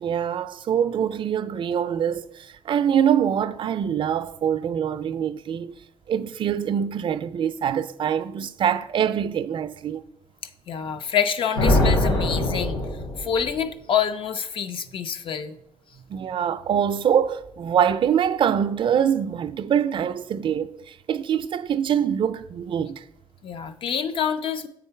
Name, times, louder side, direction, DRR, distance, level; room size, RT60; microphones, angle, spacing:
voice 1, 0.0-5.7 6.1-10.0 16.1-23.0, right 8 dB, 60° right, 0.4 m, -24 dB
voice 2, 10.7-12.8 13.2-15.6 23.4-24.7, left 8 dB, 65° left, 0.5 m, -26 dB
sound 1, 11.6-13.5, left 1 dB, 85° left, 1.8 m, -22 dB
7.9 x 3.8 x 5.6 m
cardioid pair, 130°, 10 cm